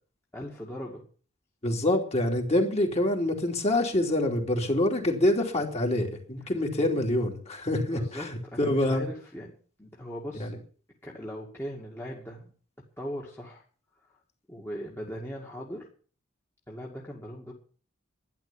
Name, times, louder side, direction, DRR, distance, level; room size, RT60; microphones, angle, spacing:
voice 1, 0.3-1.0 6.4-6.5 7.9-9.5 9.8-10.5 11.0-12.5 13.0-13.6 14.1-14.2 14.5-15.9 16.7-17.5, equal, 10° left, -3 dB, 2.2 m, -39 dB
voice 2, 1.6-9.1 10.4-10.5, left 1 dB, 30° left, 1 dB, 3.0 m, -26 dB
12.0 x 11.0 x 7.2 m, 0.42 s
head